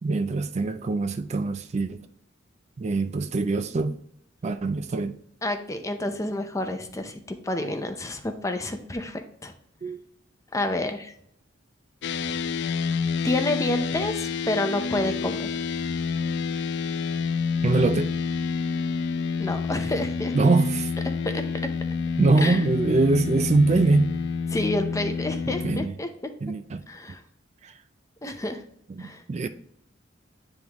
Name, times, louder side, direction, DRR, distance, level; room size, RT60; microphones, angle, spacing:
voice 1, 0.0-2.0 2.8-4.0 4.4-5.2 9.8-10.0 17.6-18.1 20.3-20.9 22.2-24.2 25.5-25.9 26.4-26.8 27.6-27.7 29.0-29.5, right 3 dB, 35° right, 0.3 m, -23 dB
voice 2, 5.4-9.5 10.5-11.1 13.2-15.7 19.4-20.3 21.2-21.4 22.4-22.6 24.5-26.1 26.9-27.2 28.2-28.6 29.0-29.2, left 1 dB, 15° left, 0.6 m, -29 dB
sound 1, 12.0-25.9, left 5 dB, 65° left, 0.3 m, -28 dB
9.6 x 3.6 x 3.0 m
head